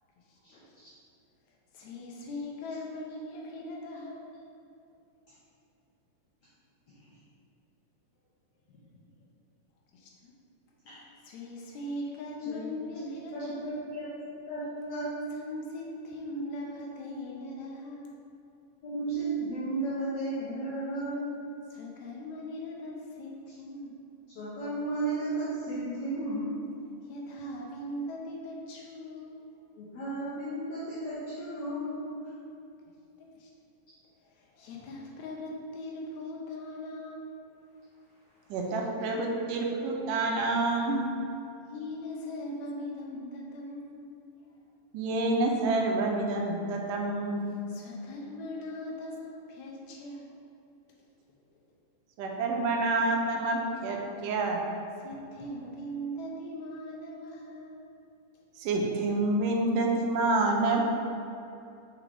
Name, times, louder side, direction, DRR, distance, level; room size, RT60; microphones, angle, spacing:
voice 1, 1.7-4.3 9.9-10.3 11.2-13.7 15.3-18.2 21.7-23.9 27.0-29.4 33.2-33.5 34.3-37.4 41.7-44.1 47.5-50.3 55.0-57.8, left 1 dB, 90° left, -2 dB, 1.6 m, -40 dB
voice 2, 13.0-14.1 14.5-14.6 14.9-15.1 18.8-21.3 24.4-26.5 29.8-32.1, right 2 dB, 65° left, -10 dB, 1.8 m, -34 dB
voice 3, 38.5-41.0 44.9-47.5 52.2-54.6 58.6-60.8, right 2 dB, 80° right, 0 dB, 2.1 m, -28 dB
6.0 x 4.8 x 3.4 m, 2.7 s
omnidirectional pair, 4.0 m